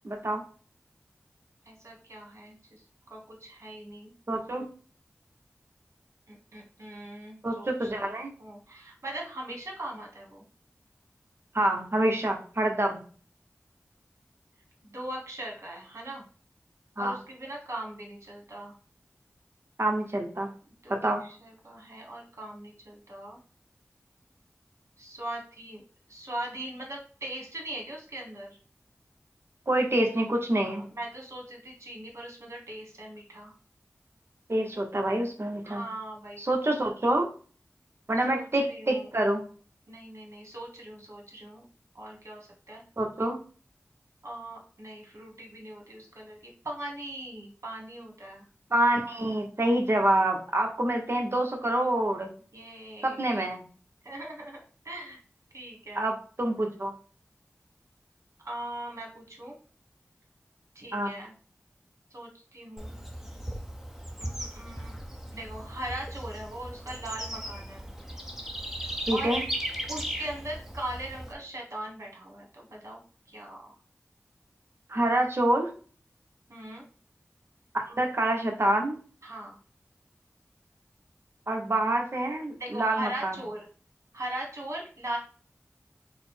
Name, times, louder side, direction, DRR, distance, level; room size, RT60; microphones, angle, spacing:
voice 1, 0.0-0.4 4.3-4.6 7.4-8.3 11.5-13.0 17.0-17.2 19.8-20.5 20.9-21.2 29.7-30.9 34.5-35.8 36.4-37.3 38.1-39.4 43.0-43.4 48.7-52.3 53.0-53.6 55.9-56.9 60.9-61.1 69.1-69.4 74.9-75.7 77.7-79.0 81.5-83.3, right 1 dB, 55° right, 3 dB, 0.9 m, -27 dB
voice 2, 1.6-2.8 3.1-4.1 6.3-10.4 14.8-16.3 17.0-18.7 20.8-23.4 25.0-25.8 26.1-28.6 30.6-33.5 35.6-36.7 38.1-39.1 39.9-41.6 41.9-42.8 44.2-48.5 52.5-53.4 54.0-55.2 55.5-56.0 58.4-59.5 60.7-61.3 62.1-62.9 64.2-64.9 65.3-67.9 68.8-69.3 69.9-73.0 73.3-73.7 76.5-76.8 79.2-79.6 82.6-83.7 84.1-85.2, right 1 dB, 70° right, -1 dB, 1.4 m, -40 dB
Bird / Insect, 62.8-71.3, equal, 5° right, 0.7 m, -37 dB
3.9 x 2.1 x 4.4 m, 0.40 s
wide cardioid pair, 40°, 5 cm